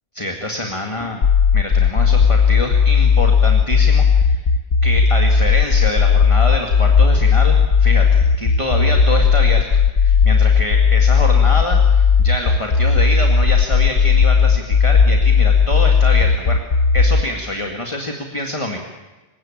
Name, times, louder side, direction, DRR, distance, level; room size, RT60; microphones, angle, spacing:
voice 1, 0.2-1.2 1.5-4.4 4.8-16.6 16.9-18.8, left 1 dB, 25° left, 3 dB, 2.2 m, -26 dB
sound 1, 1.2-17.2, left 6 dB, 75° left, 1.4 m, -14 dB
27.5 x 16.5 x 8.9 m, 1.2 s
omnidirectional pair, 1.2 m